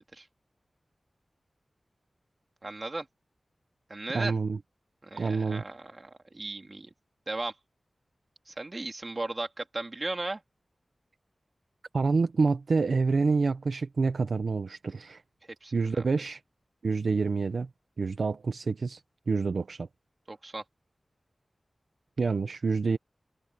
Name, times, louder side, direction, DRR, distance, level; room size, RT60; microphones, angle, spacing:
voice 1, 2.6-3.1 3.9-4.3 5.0-6.9 7.3-7.5 8.5-10.4 15.6-16.0 20.3-20.6, right 2 dB, 40° right, 3.2 m, -36 dB
voice 2, 4.1-4.6 5.2-5.6 11.9-15.2 15.7-16.4 16.8-17.7 18.0-19.0 19.3-19.9 22.2-23.0, right 4 dB, 80° right, 0.9 m, -27 dB
wide cardioid pair, 70°, 0 cm